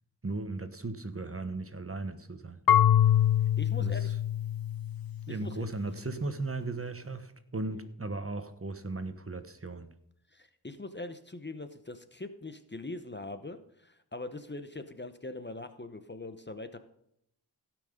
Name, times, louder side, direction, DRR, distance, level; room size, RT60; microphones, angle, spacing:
voice 1, 0.2-2.6 3.8-4.0 5.3-9.9, right 3 dB, 35° right, 10 dB, 1.2 m, -36 dB
Marimba xylophone / Wood, 2.7-5.5, left 11 dB, 60° left, 0.5 m, -25 dB
voice 2, 3.6-4.1 5.3-5.7 7.6-7.9 10.3-16.8, left 2 dB, 25° left, 10 dB, 0.9 m, -42 dB
16.5 x 6.1 x 5.2 m, 0.75 s
wide cardioid pair, 55°, 41 cm